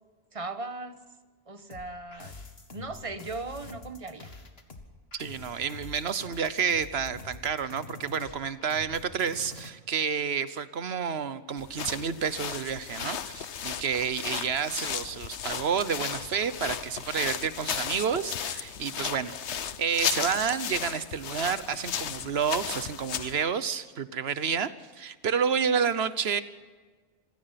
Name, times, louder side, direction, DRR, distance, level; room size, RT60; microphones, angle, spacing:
voice 1, 0.3-1.0 1.5-2.3 2.7-4.3, right 3 dB, 30° right, 10 dB, 1.3 m, -38 dB
sound 1, 1.7-9.7, left 3 dB, 60° left, 2.1 m, -46 dB
voice 2, 5.1-19.4 19.8-26.4, right 7 dB, 65° right, 14 dB, 1.2 m, -30 dB
sound 2, 11.6-23.4, left 8 dB, 80° left, 1.2 m, -35 dB
26.0 x 17.0 x 5.9 m, 1.4 s
omnidirectional pair, 1.2 m